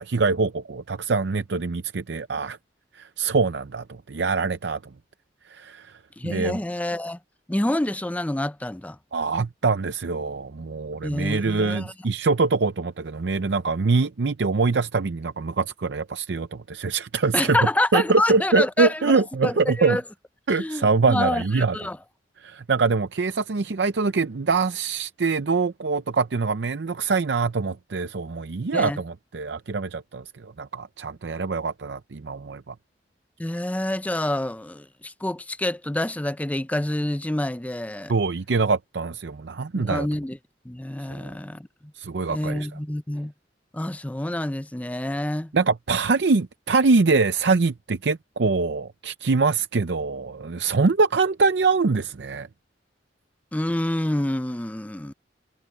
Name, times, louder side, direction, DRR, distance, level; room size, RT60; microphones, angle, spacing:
voice 1, 0.0-2.6 2.9-4.8 5.5-5.9 6.2-6.6 9.1-17.6 17.9-20.0 20.5-21.8 22.4-32.7 38.1-40.1 41.1-41.3 42.0-42.7 45.5-52.5, right 4 dB, 70° right, 0.6 m, -24 dB
voice 2, 6.2-7.2 7.5-9.0 11.0-11.9 17.3-19.1 19.4-20.0 20.5-22.0 28.7-29.0 33.4-38.1 39.7-40.4 40.7-41.7 42.3-43.3 43.7-45.5 53.5-55.1, left 1 dB, 10° left, 0.5 m, -27 dB
head